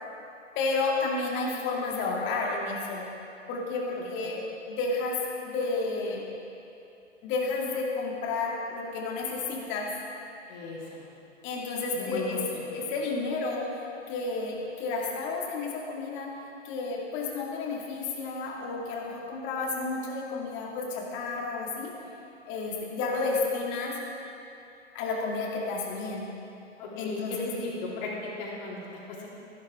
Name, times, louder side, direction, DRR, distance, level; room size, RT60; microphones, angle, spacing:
voice 1, 0.6-3.1 3.5-5.2 5.4-6.2 7.2-9.9 11.4-12.4 12.7-16.4 16.6-21.9 22.5-24.0 24.9-26.3 27.0-27.5, left 3 dB, 30° left, -2 dB, 2.2 m, -31 dB
voice 2, 10.5-11.1 11.9-12.4 26.8-29.3, left 3 dB, 50° left, -4 dB, 3.2 m, -36 dB
14.0 x 12.0 x 3.7 m, 2.7 s
hypercardioid pair, 125°, 37 cm